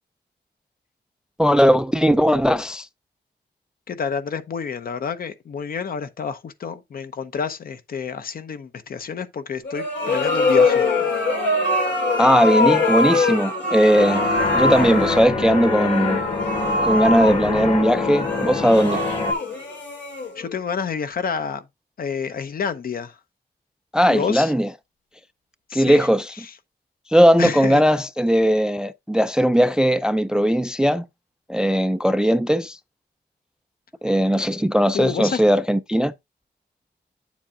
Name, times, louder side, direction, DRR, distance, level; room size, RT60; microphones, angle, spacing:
voice 1, 1.4-2.9 12.2-16.2 16.8-19.0 23.9-24.7 25.7-26.3 27.1-31.1 31.5-32.8 34.0-36.1, equal, 5° right, 0.3 m, -18 dB
voice 2, 3.9-11.3 20.4-21.6 22.0-23.2 24.1-24.5 25.7-26.1 26.4-26.5 27.4-27.8 34.9-35.4, left 6 dB, 55° left, 0.8 m, -29 dB
sound 1, 9.6-20.6, left 3 dB, 85° left, 3.1 m, -23 dB
sound 2, 13.9-19.3, left 4 dB, 35° left, 1.3 m, -25 dB
8.6 x 7.3 x 2.5 m
wide cardioid pair, 120°, 18 cm